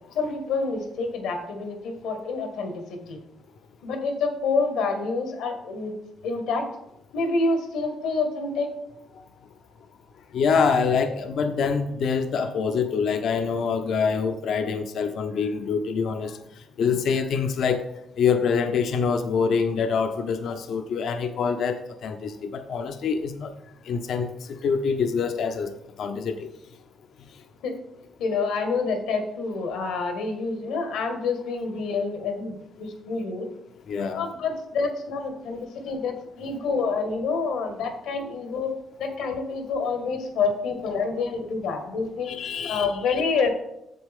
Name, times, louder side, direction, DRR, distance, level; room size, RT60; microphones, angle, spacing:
voice 1, 0.1-3.2 3.8-5.9 6.2-6.6 7.1-8.7 27.6-27.7 28.2-33.5 34.1-38.7 39.0-42.3 42.6-43.5, left 4 dB, 90° left, 5 dB, 1.6 m, -27 dB
voice 2, 10.3-17.8 18.2-23.5 23.8-26.5 33.9-34.3 42.2-43.2, left 5 dB, 70° left, 7 dB, 0.6 m, -25 dB
7.6 x 7.2 x 3.6 m, 0.83 s
cardioid pair, 90°, 0 cm